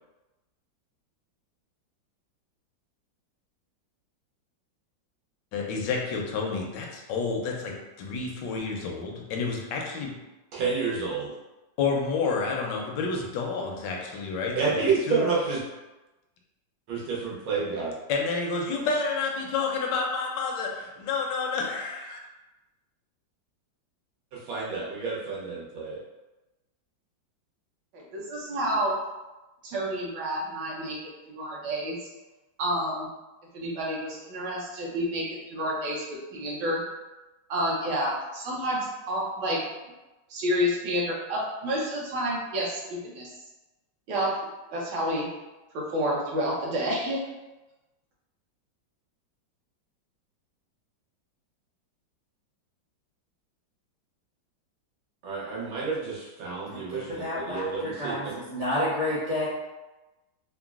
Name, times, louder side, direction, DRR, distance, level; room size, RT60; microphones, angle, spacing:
voice 1, 5.5-10.2 11.8-15.2 18.1-22.2, left 4 dB, 75° left, 0 dB, 1.1 m, -29 dB
voice 2, 10.5-11.3 14.6-15.6 16.9-17.9 24.5-26.0 55.2-58.4, right 5 dB, 85° right, -5 dB, 1.6 m, -29 dB
voice 3, 27.9-28.9 29.6-30.9 31.3-32.0 32.6-33.1 33.5-36.0 36.3-36.8 37.5-39.6 40.3-43.3 44.1-44.3 44.7-45.3 45.7-47.2, equal, 70° right, -4 dB, 1.3 m, -29 dB
voice 4, 56.7-59.5, left 1 dB, 45° right, -10 dB, 1.0 m, -30 dB
3.8 x 2.0 x 2.3 m, 1.1 s
omnidirectional pair, 2.1 m